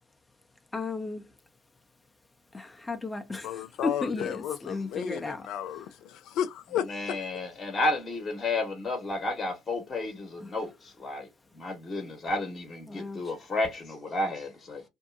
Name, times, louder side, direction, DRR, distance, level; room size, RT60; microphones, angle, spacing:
voice 1, 0.7-1.2 2.5-5.4 10.4-10.5 12.9-13.2, left 3 dB, 20° left, 0.7 m, -34 dB
voice 2, 3.4-6.8, left 10 dB, 70° left, 0.4 m, -33 dB
voice 3, 6.7-14.8, left 2 dB, 35° left, 1.1 m, -32 dB
2.6 x 2.2 x 2.6 m
hypercardioid pair, 55°, 0 cm